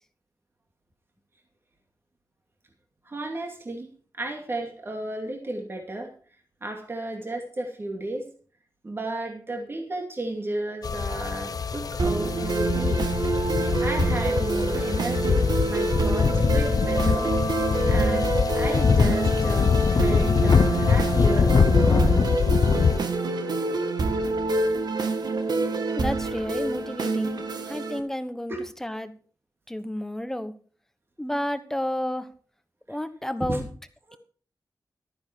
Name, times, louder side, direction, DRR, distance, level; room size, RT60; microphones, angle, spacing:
voice 1, 3.0-6.1 6.6-8.3 8.8-13.1 13.8-17.3 17.9-18.2 18.5-22.2 28.5-28.6 32.9-33.0 33.5-33.6 34.1-34.2, right 2 dB, 35° right, 2 dB, 2.4 m, -33 dB
sound 1, 10.8-23.0, left 6 dB, 65° left, 0.6 m, -23 dB
sound 2, 12.0-28.0, right 3 dB, 80° right, 1.6 m, -27 dB
voice 2, 25.9-28.5 28.8-29.1 29.7-30.5 31.2-32.3 32.9-33.7, left 1 dB, 5° left, 10 dB, 1.1 m, -31 dB
13.0 x 10.5 x 4.6 m, 0.41 s
wide cardioid pair, 120°, 7 cm